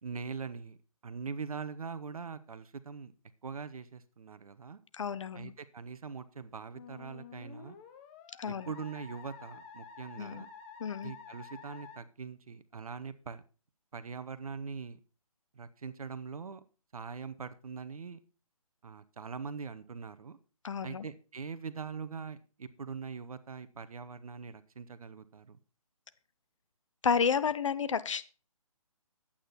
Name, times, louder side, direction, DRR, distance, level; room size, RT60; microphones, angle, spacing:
voice 1, 0.0-0.8 1.0-3.1 3.4-4.8 5.3-7.8 8.4-10.5 11.0-13.4 13.9-15.0 15.5-16.6 16.9-18.2 18.8-20.4 20.8-25.6, right 5 dB, 70° right, 13 dB, 1.1 m, -42 dB
voice 2, 4.9-5.5 8.4-8.7 10.2-10.4 10.8-11.1 20.6-21.1 27.0-28.2, left 6 dB, 55° left, 15 dB, 0.8 m, -31 dB
Musical instrument, 6.7-12.0, left 6 dB, 20° left, 0.9 m, -50 dB
10.0 x 8.7 x 4.1 m, 0.35 s
hypercardioid pair, 155°, 19 cm